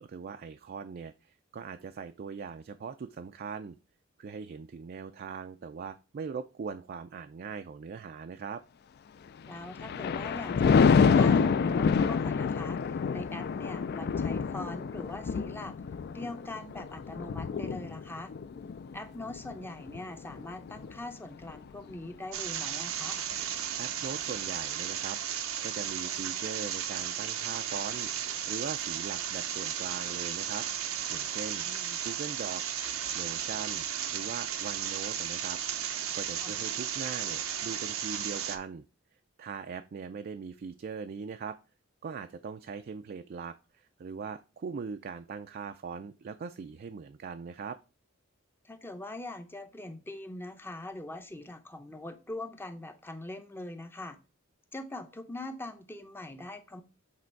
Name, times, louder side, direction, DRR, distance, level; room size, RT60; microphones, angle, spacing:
voice 1, 0.0-3.8 4.2-8.6 23.8-30.7 31.1-31.7 32.0-32.6 33.1-35.6 36.1-38.8 39.4-41.6 42.0-47.8, right 5 dB, 45° right, 8 dB, 0.3 m, -40 dB
Thunder, 9.5-21.0 21.4-21.8, left 5 dB, 50° left, 0.3 m, -27 dB
voice 2, 9.5-15.8 16.1-18.3 18.9-23.2 31.6-32.0 36.4-36.5 48.6-54.2 54.7-56.8, left 2 dB, 10° left, 7 dB, 0.6 m, -42 dB
sound 1, 22.3-38.6, right 9 dB, 90° right, 0.7 m, -34 dB
7.6 x 3.3 x 4.5 m, 0.32 s
head